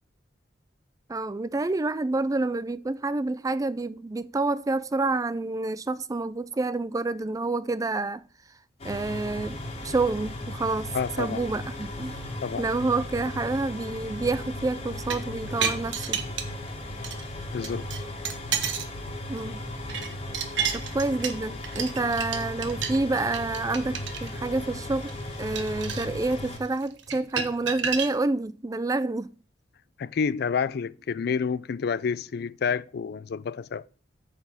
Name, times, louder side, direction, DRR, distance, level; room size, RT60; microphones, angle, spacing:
voice 1, 1.1-8.2 8.8-10.9 11.2-12.3 12.6-16.2 19.3-19.6 20.7-25.1 25.4-29.3, right 3 dB, 20° right, 0.4 m, -28 dB
sound 1, 8.8-26.6, left 1 dB, 35° left, 1.9 m, -36 dB
voice 2, 10.9-11.4 12.4-12.6 17.5-17.9 30.0-33.8, left 6 dB, 60° left, 0.4 m, -29 dB
sound 2, 14.9-16.7 17.0-17.2 17.6-18.9 19.3-28.1, right 7 dB, 90° right, 1.3 m, -32 dB
9.1 x 4.2 x 7.2 m
head